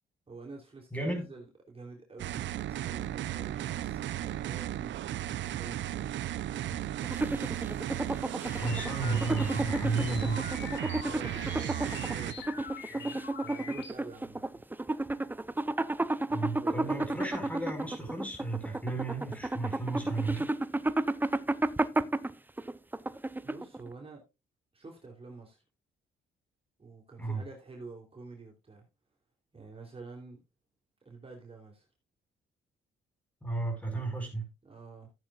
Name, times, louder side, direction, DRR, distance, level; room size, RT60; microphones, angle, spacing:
voice 1, 0.3-7.3 8.4-9.4 10.9-12.5 12.8-14.6 16.5-17.2 23.4-24.2 24.7-25.6 26.8-28.9 29.5-30.4 31.0-31.9 34.6-35.1, right 3 dB, 30° right, 3.3 m, -48 dB
voice 2, 0.9-1.3 8.6-10.5 16.3-20.5 27.2-27.4 33.4-34.5, right 3 dB, 5° left, 5.1 m, -33 dB
sound 1, 2.2-12.3, right 12 dB, 70° right, 0.7 m, -35 dB
sound 2, 7.0-23.9, right 2 dB, 10° right, 0.6 m, -32 dB
sound 3, 8.4-13.9, left 7 dB, 65° left, 3.0 m, -45 dB
14.5 x 8.9 x 2.4 m
cardioid pair, 90°, 20 cm